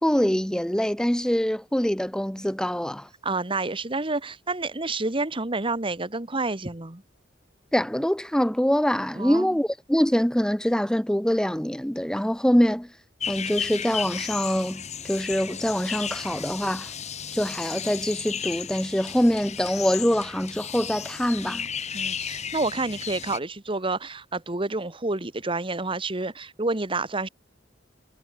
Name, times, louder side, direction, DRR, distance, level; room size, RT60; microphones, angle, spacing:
voice 1, 0.0-3.1 7.7-12.9 13.3-16.9 17.3-21.7, equal, 5° left, 0.8 m, -24 dB
voice 2, 3.2-7.0 9.2-9.6 21.9-27.3, right 3 dB, 30° right, 1.5 m, -29 dB
sound 1, 13.2-23.4, left 7 dB, 40° left, 2.0 m, -34 dB
head